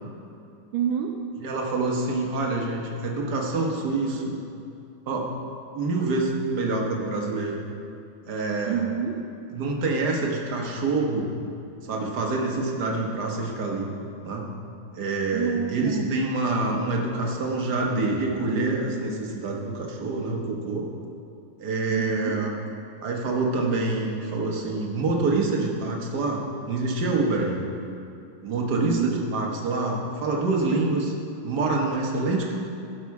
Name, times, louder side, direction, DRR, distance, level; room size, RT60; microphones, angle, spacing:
voice 1, 0.7-1.3 8.7-9.3 15.3-16.1 21.9-22.5 28.9-29.3, right 8 dB, 90° right, 1 dB, 1.4 m, -28 dB
voice 2, 1.4-4.4 5.1-5.3 5.7-7.6 8.3-8.8 9.5-11.3 11.8-13.9 14.2-14.5 14.9-20.9 21.6-22.5 23.0-27.7 28.4-31.1 31.4-32.6, right 3 dB, 60° right, 0 dB, 1.7 m, -26 dB
11.5 x 6.4 x 4.7 m, 2.6 s
omnidirectional pair, 2.1 m